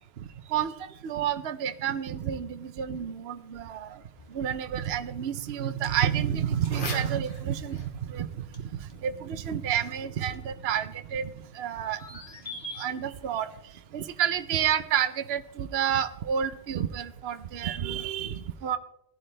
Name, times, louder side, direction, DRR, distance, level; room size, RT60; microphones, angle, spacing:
voice 1, 0.2-4.0 4.3-12.2 12.8-13.5 13.9-18.8, right 9 dB, 65° right, 10 dB, 0.9 m, -30 dB
sound 1, 4.2-15.2, left 1 dB, 45° left, 2.2 m, -46 dB
17.0 x 11.5 x 3.3 m, 0.76 s
omnidirectional pair, 1.2 m